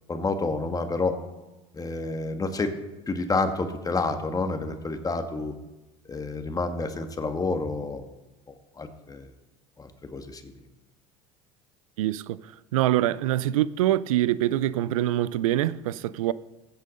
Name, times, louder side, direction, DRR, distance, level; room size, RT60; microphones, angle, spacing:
voice 1, 0.1-1.1 1.7-2.7 3.1-5.5 6.1-8.0 8.8-9.3 9.8-10.5, left 3 dB, 20° left, 1.4 m, -29 dB
voice 2, 12.0-12.4 12.7-16.3, right 13 dB, 85° right, 0.4 m, -24 dB
15.5 x 5.6 x 5.2 m
hypercardioid pair, 80°, 17 cm